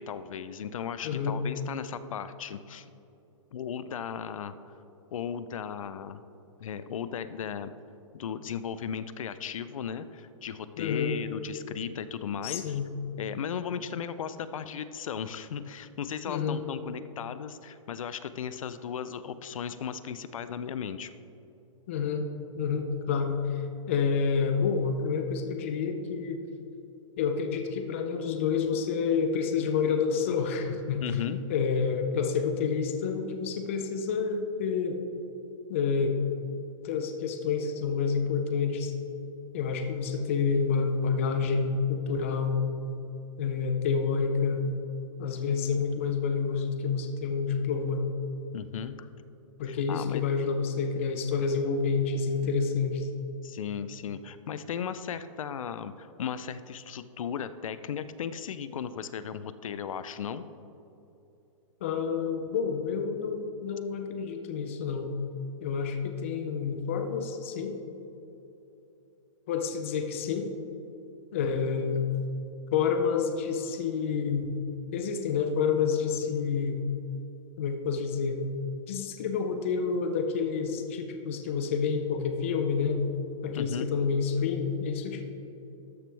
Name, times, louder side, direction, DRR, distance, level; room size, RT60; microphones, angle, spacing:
voice 1, 0.0-2.9 3.5-4.5 5.1-6.2 6.6-7.7 8.1-12.8 13.2-21.1 31.0-31.4 48.5-49.1 49.7-50.2 53.4-60.4 83.5-83.9, left 8 dB, 75° left, 13 dB, 0.5 m, -36 dB
voice 2, 1.0-1.4 10.8-11.2 12.4-12.9 16.3-16.6 21.9-22.3 22.6-23.4 23.9-26.4 27.2-31.0 31.5-35.0 35.7-36.1 36.8-38.9 39.5-42.7 43.4-44.6 45.2-48.0 49.6-53.1 61.8-65.1 65.6-67.8 69.5-70.5 71.3-72.0 72.7-74.5 74.9-76.8 77.6-78.4 78.9-83.0 83.4-85.2, left 5 dB, 25° left, 5 dB, 0.4 m, -28 dB
13.0 x 6.2 x 3.3 m, 2.9 s
hypercardioid pair, 180°, 17 cm